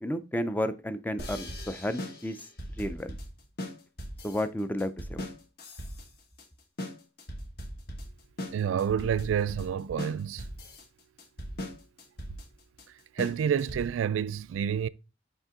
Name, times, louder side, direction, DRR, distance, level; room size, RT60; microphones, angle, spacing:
voice 1, 0.0-2.4 2.8-3.2 4.2-5.3, left 1 dB, 10° left, 0.4 m, -32 dB
sound 1, 1.2-14.1, left 1 dB, 50° left, 1.3 m, -40 dB
voice 2, 8.5-10.5 13.1-14.9, right 8 dB, 85° right, 0.3 m, -28 dB
5.4 x 5.0 x 3.6 m
head